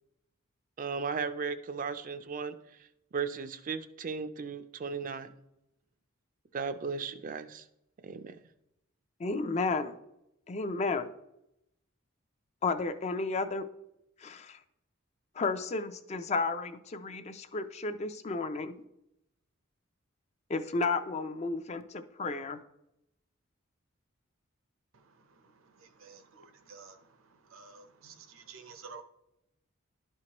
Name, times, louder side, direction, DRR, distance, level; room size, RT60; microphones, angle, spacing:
voice 1, 0.8-2.5 3.1-5.3 6.5-7.6 8.0-8.4, right 5 dB, 40° right, 11 dB, 0.4 m, -36 dB
voice 2, 9.2-10.0 10.5-11.1 12.6-13.7 14.2-14.6 15.4-18.7 20.5-22.6, left 3 dB, 30° left, 10 dB, 0.4 m, -32 dB
voice 3, 25.4-27.1 27.4-29.0, right 5 dB, 75° right, 9 dB, 0.7 m, -51 dB
11.5 x 4.5 x 2.9 m, 0.84 s
head